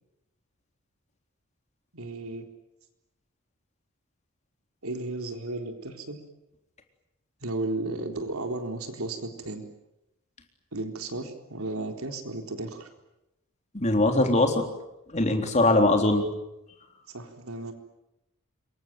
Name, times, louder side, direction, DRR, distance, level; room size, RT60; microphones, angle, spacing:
voice 1, 1.9-2.5 4.8-6.2 7.4-9.6 10.7-12.9 15.7-15.9 17.1-17.7, right 2 dB, 85° right, 5 dB, 3.9 m, -34 dB
voice 2, 13.7-14.7 15.1-16.2, left 2 dB, 35° left, 4 dB, 3.8 m, -21 dB
27.0 x 23.0 x 9.2 m, 0.89 s
head